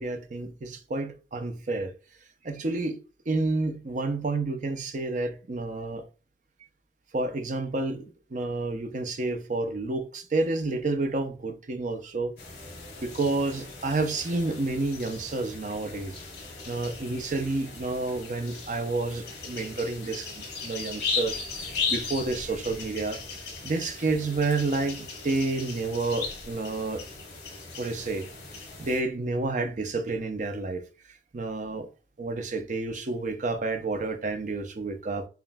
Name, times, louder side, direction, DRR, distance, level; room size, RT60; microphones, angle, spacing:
voice 1, 0.0-1.9 2.4-3.0 3.3-6.0 7.1-8.0 8.3-12.4 13.0-16.2 16.7-21.4 21.9-23.2 23.6-27.0 27.8-28.3 28.8-30.8 31.3-31.9 32.2-35.3, right 3 dB, 45° right, 0.6 m, -29 dB
sound 1, 12.4-29.0, left 4 dB, 65° left, 2.2 m, -37 dB
7.1 x 2.4 x 2.2 m
head